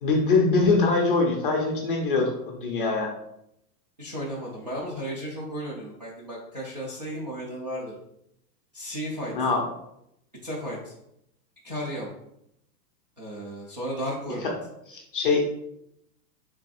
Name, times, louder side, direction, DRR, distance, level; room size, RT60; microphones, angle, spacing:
voice 1, 0.0-3.1 9.3-9.6 14.9-15.4, left 3 dB, 35° left, 1 dB, 0.6 m, -23 dB
voice 2, 4.0-7.9 8.7-9.3 10.4-10.9 11.6-12.1 13.2-14.5, equal, 30° right, -6 dB, 0.4 m, -34 dB
3.4 x 3.2 x 4.8 m, 0.79 s
supercardioid pair, 180°, 50 cm